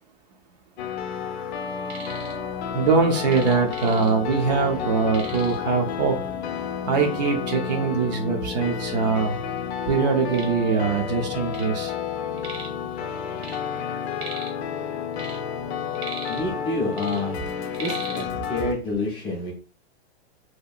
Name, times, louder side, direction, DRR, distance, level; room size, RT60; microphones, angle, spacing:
sound 1, 0.8-18.7, left 7 dB, 85° left, 0.5 m, -31 dB
sound 2, 1.6-2.4 2.7-4.4 4.7-4.8 5.1-5.7 6.5-6.6 7.2-7.3 8.0-8.1 8.4-9.2 9.7-11.8 12.0-12.8 13.1-14.7 15.0-16.6 16.9-18.3, right 4 dB, 80° right, 1.2 m, -40 dB
voice 1, 2.7-6.2 6.9-9.4 9.9-11.9, right 5 dB, 45° right, 3 dB, 0.4 m, -22 dB
voice 2, 16.3-17.5 17.8-19.5, left 2 dB, 15° left, -3 dB, 0.5 m, -28 dB
2.8 x 2.2 x 2.3 m, 0.37 s
supercardioid pair, 160°, 32 cm